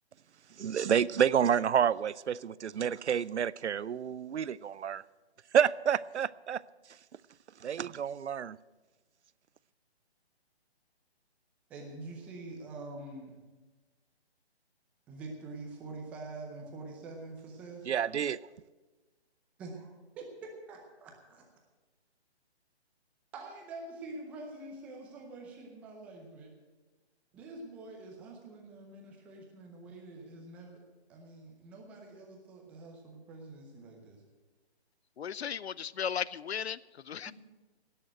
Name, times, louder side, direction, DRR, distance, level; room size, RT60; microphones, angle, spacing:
voice 1, 0.6-5.0 5.5-6.6 7.6-8.6 17.9-18.4, right 8 dB, 90° right, 20 dB, 0.5 m, -29 dB
voice 2, 11.7-13.4 15.1-17.8 19.6-19.9 20.2-21.4 23.3-26.5 27.3-30.8 31.1-34.2 37.2-37.3, right 2 dB, 5° right, 1 dB, 0.6 m, -46 dB
voice 3, 35.2-37.3, left 8 dB, 75° left, 21 dB, 0.6 m, -36 dB
17.0 x 6.7 x 8.8 m, 1.2 s
hypercardioid pair, 155°, 33 cm